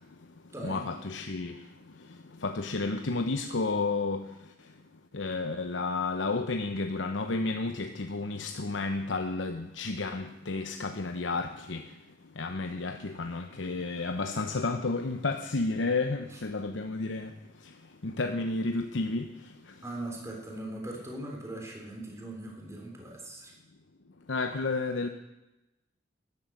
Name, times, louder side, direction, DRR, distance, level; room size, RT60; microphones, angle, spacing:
voice 1, 0.6-1.6 2.1-4.3 5.1-11.8 12.4-17.3 17.6-17.7 18.0-19.3 19.7-19.8 24.3-25.1, left 3 dB, 85° left, 6 dB, 0.9 m, -31 dB
voice 2, 19.8-23.5, right 1 dB, 15° right, 0 dB, 3.6 m, -40 dB
13.5 x 10.5 x 7.7 m, 0.98 s
head